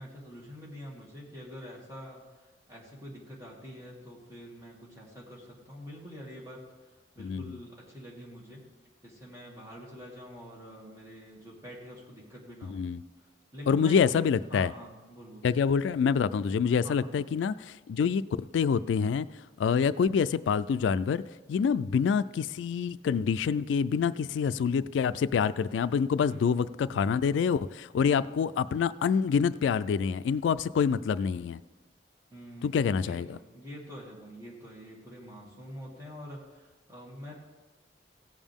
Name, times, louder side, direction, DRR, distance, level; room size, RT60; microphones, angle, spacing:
voice 1, 0.0-8.6 9.0-12.8 13.5-15.5 16.8-17.1 26.2-26.9 32.3-37.3, equal, 15° right, -4 dB, 2.2 m, -46 dB
voice 2, 7.2-7.6 12.6-13.0 13.7-14.7 15.4-19.3 19.6-21.2 21.5-31.6 32.6-33.4, left 6 dB, 90° left, 16 dB, 0.3 m, -26 dB
16.5 x 7.3 x 3.6 m, 1.3 s
head